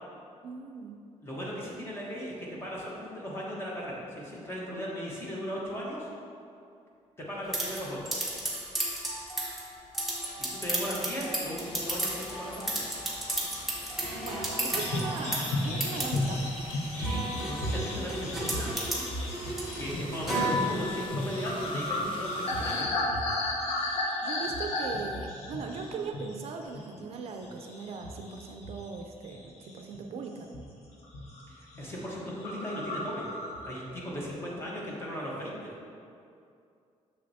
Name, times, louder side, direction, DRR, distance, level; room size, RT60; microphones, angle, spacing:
voice 1, 0.4-1.0 14.2-16.6 24.2-30.5 34.7-34.8, right 5 dB, 55° right, 4 dB, 0.4 m, -39 dB
voice 2, 1.2-6.1 7.2-8.0 10.3-12.8 16.8-18.7 19.8-23.3 31.5-33.3 33.6-35.7, equal, 20° left, -5 dB, 1.1 m, -37 dB
sound 1, 7.5-21.0, right 1 dB, ahead, 0.9 m, -34 dB
sound 2, 11.6-22.8, left 2 dB, 45° left, 0.6 m, -47 dB
sound 3, 14.7-26.4 26.7-27.0 27.4-29.0 29.2-30.0 30.5-30.8 31.0-31.4 31.7-31.8 32.1-32.2 32.4-33.8, left 1 dB, 60° left, 0.9 m, -34 dB
6.6 x 6.4 x 2.7 m, 2.5 s
cardioid pair, 180°, 12 cm